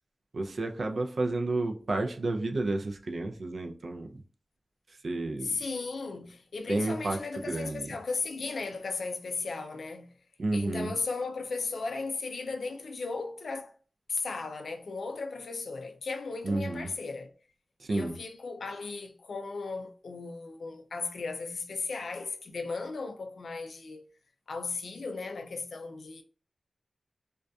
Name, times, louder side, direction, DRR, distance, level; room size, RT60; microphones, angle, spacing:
voice 1, 0.3-4.2 5.0-5.6 6.7-7.9 10.4-10.9 16.4-16.9 17.8-18.1, right 2 dB, 65° right, 0.3 m, -31 dB
voice 2, 5.4-10.2 10.5-13.7 14.1-17.3 17.9-24.1 24.5-26.2, left 4 dB, 85° left, 0.3 m, -36 dB
2.6 x 2.2 x 2.2 m
wide cardioid pair, 85°, 0 cm